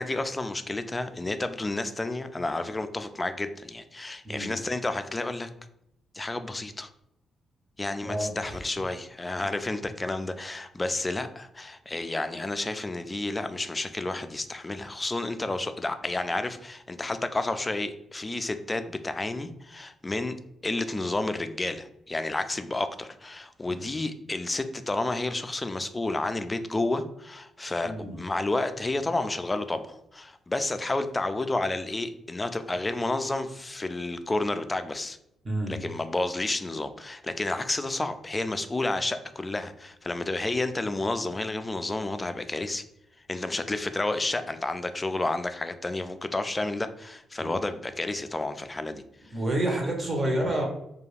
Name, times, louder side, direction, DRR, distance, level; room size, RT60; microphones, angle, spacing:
voice 1, 0.0-5.5 6.1-6.9 7.8-20.4 20.6-35.2 35.7-42.8 43.3-49.0, left 2 dB, 20° left, 9 dB, 0.3 m, -31 dB
voice 2, 8.0-8.6 23.7-23.9 27.8-28.2 35.4-35.8 47.4-47.6 49.3-50.6, right 1 dB, 35° right, 1 dB, 0.9 m, -29 dB
2.4 x 2.2 x 3.2 m, 0.78 s
supercardioid pair, 65°, 0 cm